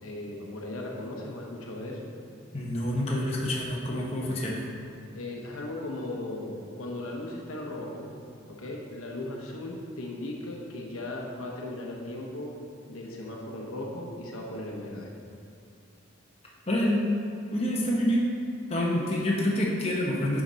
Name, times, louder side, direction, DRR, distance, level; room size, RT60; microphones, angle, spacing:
voice 1, 0.0-2.1 5.1-8.1 8.6-12.5 12.9-15.1, left 1 dB, 85° left, -1 dB, 1.0 m, -37 dB
voice 2, 2.5-4.7 16.7-17.1 17.5-18.3 18.7-20.4, left 1 dB, 30° left, -4 dB, 0.9 m, -27 dB
7.3 x 5.0 x 4.0 m, 2.5 s
head